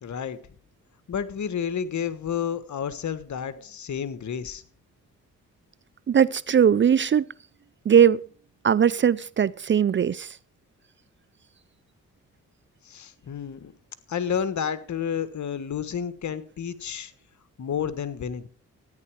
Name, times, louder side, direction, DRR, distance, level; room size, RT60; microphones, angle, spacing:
voice 1, 0.0-0.4 1.1-4.6 12.8-13.7 14.1-17.1 17.6-18.5, left 8 dB, 60° left, 1.4 m, -30 dB
voice 2, 6.1-7.3 7.9-8.2 8.6-10.4, right 8 dB, 35° right, 0.4 m, -20 dB
13.5 x 9.9 x 4.8 m
cardioid pair, 65°, 33 cm